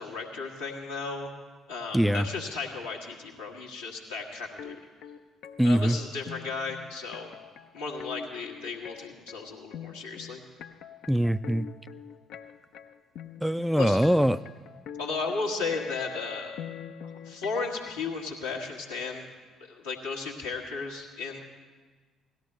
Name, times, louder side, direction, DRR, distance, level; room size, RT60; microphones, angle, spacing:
voice 1, 0.0-1.3 1.7-4.8 5.6-7.3 7.7-10.4 13.8-14.0 15.0-16.5 17.0-19.3 19.7-21.4, left 4 dB, 80° left, -3 dB, 1.5 m, -35 dB
voice 2, 1.9-2.3 5.6-6.0 11.1-11.7 13.4-14.4, equal, ahead, 14 dB, 0.3 m, -23 dB
sound 1, 4.6-18.1, left 8 dB, 60° left, 0.5 m, -44 dB
17.5 x 13.0 x 3.3 m, 1.4 s
figure-of-eight pair, 45°, 0 cm